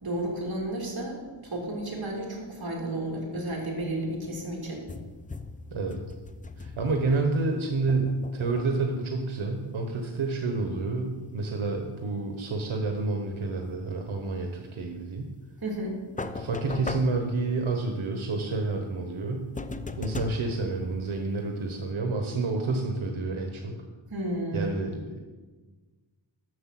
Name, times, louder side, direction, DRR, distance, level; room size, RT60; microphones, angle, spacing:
voice 1, 0.0-4.8 15.6-16.0 24.1-24.7, right 1 dB, 50° right, -1 dB, 2.8 m, -32 dB
sound 1, 4.9-7.3 7.9-9.0 16.2-17.8 19.5-21.5, left 3 dB, 20° left, 0.4 m, -39 dB
voice 2, 6.6-15.3 16.3-19.5 20.0-23.8 24.5-25.2, right 3 dB, 90° right, 3 dB, 1.0 m, -29 dB
7.9 x 6.5 x 7.5 m, 1.3 s
wide cardioid pair, 85°, 47 cm